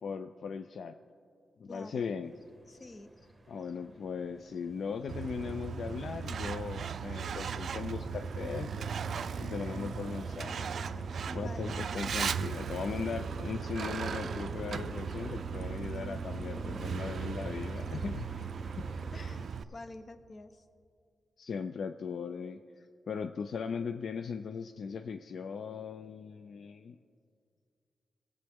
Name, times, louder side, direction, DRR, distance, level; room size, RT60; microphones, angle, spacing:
voice 1, 0.0-1.0 1.6-2.3 3.5-8.9 9.4-10.7 11.3-18.3 18.8-19.0 21.4-22.6 23.1-27.0, left 6 dB, 70° left, 9 dB, 0.3 m, -38 dB
voice 2, 1.7-2.1 2.7-3.3 11.3-11.8 17.7-18.2 19.1-20.6, left 2 dB, 45° left, 9 dB, 0.7 m, -48 dB
sound 1, 2.2-19.4, right 1 dB, 15° right, 1.2 m, -49 dB
Truck, 5.1-19.6, right 6 dB, 75° right, 0.3 m, -37 dB
17.5 x 7.8 x 3.6 m, 2.3 s
cardioid pair, 95°, 0 cm